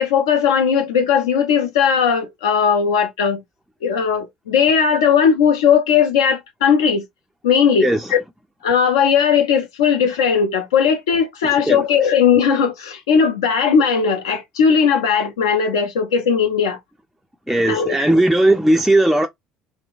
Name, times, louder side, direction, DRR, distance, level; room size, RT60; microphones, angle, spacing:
voice 1, 0.0-3.4 3.8-7.0 7.4-8.2 8.6-16.8 17.7-18.1, left 7 dB, 70° left, 0.5 m, -17 dB
voice 2, 17.5-19.3, right 1 dB, ahead, 0.3 m, -16 dB
2.7 x 2.1 x 2.4 m
figure-of-eight pair, 60°, 3 cm